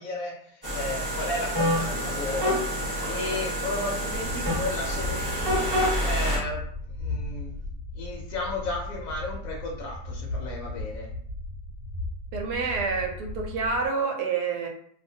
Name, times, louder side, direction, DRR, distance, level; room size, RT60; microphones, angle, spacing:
voice 1, 0.0-5.6 5.9-7.5 7.9-11.1, left 2 dB, 70° left, -2 dB, 0.9 m, -34 dB
sound 1, 0.6-6.4, equal, 15° right, 0.9 m, -27 dB
sound 2, 4.1-13.9, left 2 dB, 90° left, 1.2 m, -36 dB
voice 2, 12.3-14.7, right 4 dB, 80° right, 2 dB, 1.1 m, -28 dB
2.7 x 2.2 x 2.6 m, 0.64 s
omnidirectional pair, 1.7 m